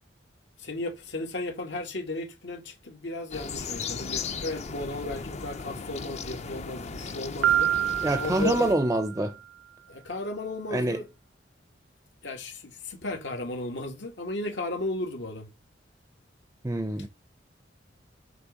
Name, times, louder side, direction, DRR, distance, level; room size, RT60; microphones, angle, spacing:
voice 1, 0.6-7.7 8.2-8.7 9.9-11.1 12.2-15.5, left 2 dB, 75° left, 1.9 m, -35 dB
sound 1, 3.3-8.8, left 5 dB, 40° left, 0.6 m, -36 dB
Piano, 7.4-9.3, right 11 dB, 85° right, 0.3 m, -27 dB
voice 2, 8.0-9.3 10.7-11.0 16.6-17.1, right 1 dB, 15° right, 0.5 m, -25 dB
8.0 x 3.2 x 6.3 m
head